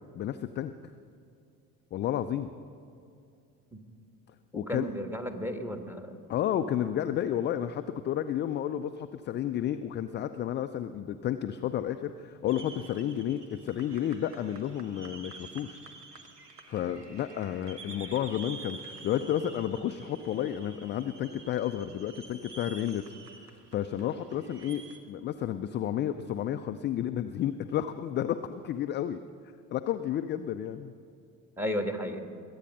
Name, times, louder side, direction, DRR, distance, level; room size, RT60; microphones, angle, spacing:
voice 1, 0.2-0.7 1.9-2.5 4.5-4.9 6.3-15.8 16.7-23.0 23.7-29.2 29.7-30.9, left 10 dB, 25° left, 9 dB, 0.4 m, -31 dB
voice 2, 4.5-6.1 31.6-32.3, equal, 5° right, 6 dB, 1.4 m, -33 dB
sound 1, 12.5-25.0, right 4 dB, 90° right, 1.0 m, -49 dB
21.5 x 8.4 x 5.5 m, 2.4 s
figure-of-eight pair, 55°, 46 cm